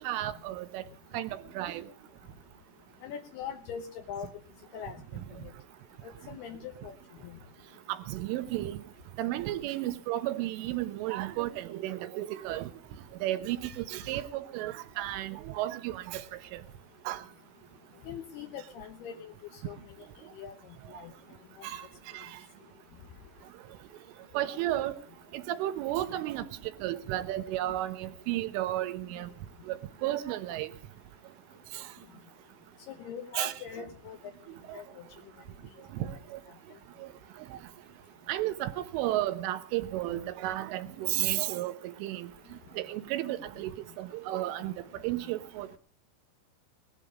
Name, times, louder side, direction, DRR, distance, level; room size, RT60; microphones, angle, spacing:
voice 1, 0.0-0.8 1.1-1.8 8.1-8.8 9.2-12.7 13.2-16.2 16.5-16.6 17.1-17.2 21.6-21.8 22.1-22.3 24.4-25.0 25.3-26.5 26.8-29.3 29.7-30.7 31.7-31.8 33.4-33.9 34.7-34.8 36.0-36.4 37.0-37.1 38.3-42.3 42.8-43.7 44.0-44.7 45.0-45.8, right 14 dB, 80° right, 3.5 m, -33 dB
voice 2, 3.0-4.3 4.7-5.0 5.4-5.5 6.0-6.9 7.2-7.3 18.1-19.8 20.3-20.5 20.9-21.1 32.9-34.2 34.7-34.8 36.0-36.1, left 8 dB, 70° left, 2.6 m, -41 dB
19.5 x 12.0 x 5.0 m
omnidirectional pair, 5.7 m